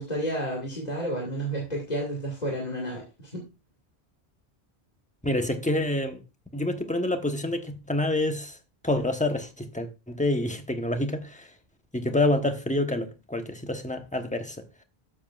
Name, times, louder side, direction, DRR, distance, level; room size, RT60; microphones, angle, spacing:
voice 1, 0.0-3.4, right 1 dB, 40° left, 2.2 m, -31 dB
voice 2, 5.2-6.2 6.5-8.6 8.8-11.5 11.9-14.6, left 1 dB, 5° left, 1.0 m, -27 dB
12.5 x 7.3 x 2.4 m
omnidirectional pair, 1.1 m